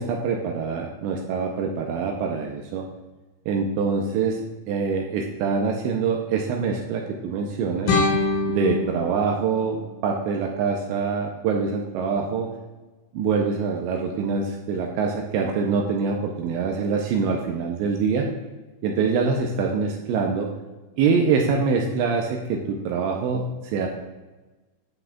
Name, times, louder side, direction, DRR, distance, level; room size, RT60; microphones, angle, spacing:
voice 1, 0.0-2.9 3.5-4.4 4.7-8.0 8.5-12.5 13.1-18.3 18.8-20.5 21.0-23.9, right 5 dB, 80° right, 1 dB, 2.7 m, -24 dB
sound 1, 7.9-10.9, left 3 dB, 70° left, 4.2 m, -26 dB
11.0 x 7.7 x 2.4 m, 1.2 s
omnidirectional pair, 5.8 m